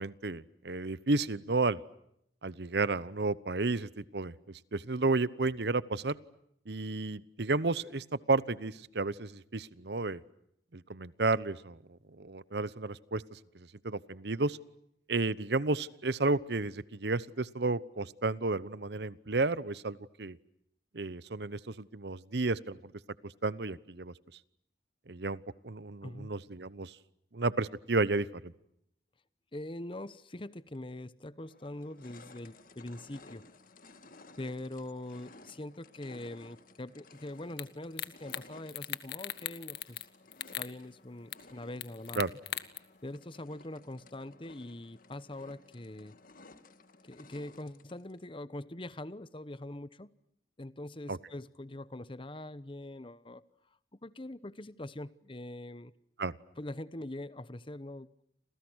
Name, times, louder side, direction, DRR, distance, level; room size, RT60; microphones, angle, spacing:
voice 1, 0.0-1.8 2.4-4.3 4.7-6.2 6.7-10.2 10.7-11.8 12.2-14.6 15.1-20.4 20.9-22.9 23.2-24.1 25.1-26.9 27.3-28.5 42.2-42.3 51.1-51.2 56.2-56.3, right 3 dB, 70° right, 18 dB, 1.0 m, -32 dB
voice 2, 29.5-33.4 34.4-40.0 40.6-42.2 43.0-46.2 47.1-50.1 50.6-53.4 54.0-55.9 56.6-58.2, left 1 dB, 30° left, 16 dB, 1.0 m, -43 dB
sound 1, 30.7-30.8 31.4-48.2, left 3 dB, 50° left, 2.0 m, -57 dB
sound 2, 37.6-37.7 38.0-38.4 38.7-40.1 40.3-40.7 41.3-41.4 41.8-42.8, left 11 dB, 75° left, 1.6 m, -37 dB
30.0 x 27.0 x 6.4 m, 0.75 s
head